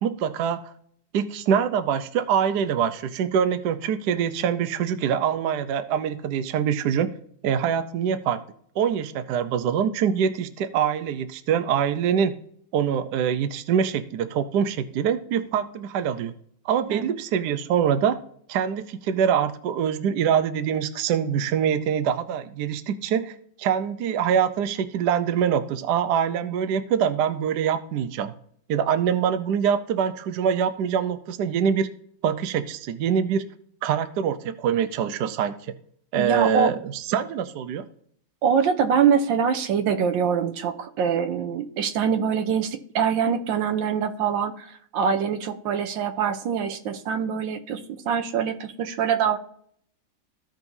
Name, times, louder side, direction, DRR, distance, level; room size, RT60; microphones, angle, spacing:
voice 1, 0.0-0.7 1.1-7.1 7.4-8.4 8.8-12.3 12.7-16.3 16.6-18.1 18.5-23.3 23.6-28.3 28.7-31.9 32.2-33.4 33.8-35.5 36.1-37.8, right 8 dB, 70° right, 11 dB, 1.2 m, -24 dB
voice 2, 36.1-36.7 38.4-49.4, right 7 dB, 85° right, 8 dB, 1.5 m, -24 dB
15.5 x 5.2 x 2.7 m, 0.63 s
omnidirectional pair, 2.0 m